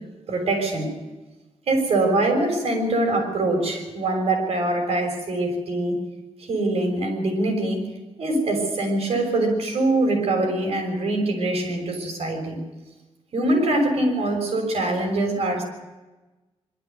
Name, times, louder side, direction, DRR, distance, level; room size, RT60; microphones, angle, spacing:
voice 1, 0.3-1.0 1.7-6.0 6.5-7.8 8.2-12.6 13.3-15.6, right 2 dB, 70° right, 3 dB, 6.4 m, -23 dB
23.0 x 12.5 x 9.4 m, 1.1 s
wide cardioid pair, 170°, 11 cm